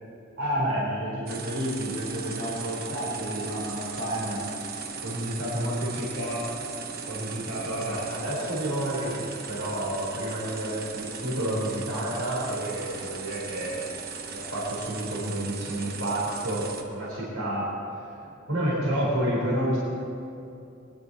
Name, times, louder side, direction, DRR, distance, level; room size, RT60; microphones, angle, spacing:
voice 1, 0.4-4.4 5.0-6.5 7.1-13.8 14.3-17.7 18.5-19.8, right 1 dB, 80° right, -6 dB, 4.0 m, -30 dB
sound 1, 1.3-16.8, right 5 dB, 45° right, 1.0 m, -38 dB
21.0 x 11.0 x 4.1 m, 2.7 s
head